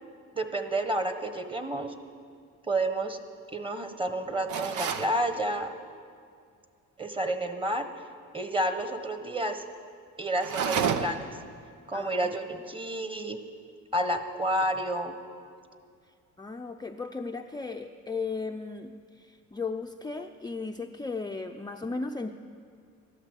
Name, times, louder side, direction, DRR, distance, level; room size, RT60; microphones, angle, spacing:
voice 1, 0.3-1.9 2.7-3.2 3.5-5.7 7.0-7.9 8.3-9.6 10.2-11.3 11.9-13.4 13.9-15.2, right 1 dB, 15° right, 7 dB, 1.3 m, -30 dB
sound 1, 4.5-5.1 10.4-11.3, right 7 dB, 90° right, 0.9 m, -29 dB
voice 2, 11.9-12.4 16.1-22.3, left 4 dB, 15° left, 3 dB, 0.5 m, -36 dB
13.0 x 11.5 x 8.2 m, 2.2 s
cardioid pair, 90°, 30 cm